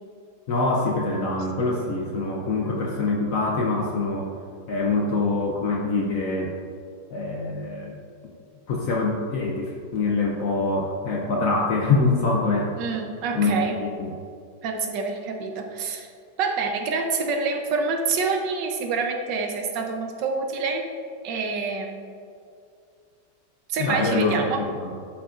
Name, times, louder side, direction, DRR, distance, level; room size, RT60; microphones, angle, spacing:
voice 1, 0.5-4.3 4.7-6.5 7.1-7.9 8.7-12.7 13.3-14.1 23.8-24.4 24.8-24.9, left 3 dB, 60° left, -1 dB, 1.0 m, -24 dB
voice 2, 12.8-13.8 14.6-16.1 16.4-20.9 21.2-22.1 23.7-24.6, right 4 dB, 85° right, 3 dB, 1.5 m, -27 dB
12.0 x 5.1 x 2.5 m, 2.3 s
omnidirectional pair, 1.9 m